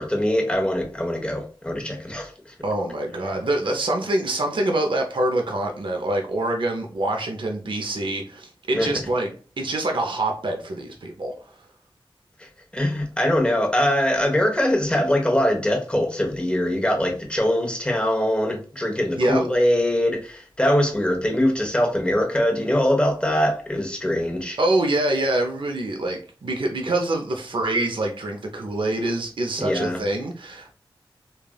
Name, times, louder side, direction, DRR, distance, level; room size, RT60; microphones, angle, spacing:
voice 1, 0.0-2.3 8.7-8.9 12.4-12.5 12.7-24.6 29.6-30.0, left 1 dB, 10° left, 1.0 m, -22 dB
voice 2, 2.6-9.3 9.6-11.3 19.2-19.5 24.6-30.7, right 1 dB, 60° right, 0.6 m, -25 dB
3.3 x 2.3 x 2.2 m
cardioid pair, 45°, 9 cm